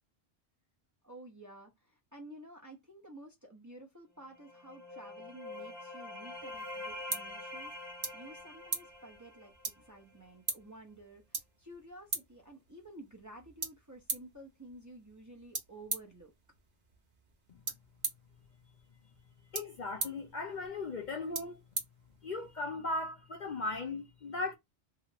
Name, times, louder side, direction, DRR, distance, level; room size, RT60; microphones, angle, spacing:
voice 1, 1.0-7.7 8.1-16.3, right 1 dB, 20° right, 0.6 m, -52 dB
sound 1, 4.3-10.0, left 2 dB, 65° right, 1.2 m, -45 dB
sound 2, 6.3-22.6, right 4 dB, 45° right, 0.9 m, -43 dB
voice 2, 19.5-21.6 22.2-24.5, left 3 dB, 50° left, 0.6 m, -37 dB
3.0 x 2.4 x 2.8 m
omnidirectional pair, 1.2 m